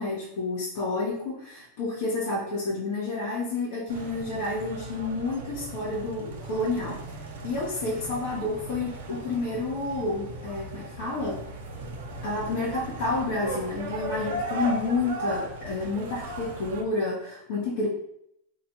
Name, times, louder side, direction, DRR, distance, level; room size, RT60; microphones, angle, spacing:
voice 1, 0.0-7.0 7.4-11.5 12.2-17.9, left 3 dB, 75° left, -6 dB, 1.0 m, -30 dB
sound 1, 3.9-16.8, right 2 dB, 80° right, 0.7 m, -37 dB
3.1 x 2.4 x 4.1 m, 0.75 s
supercardioid pair, 135°, 0 cm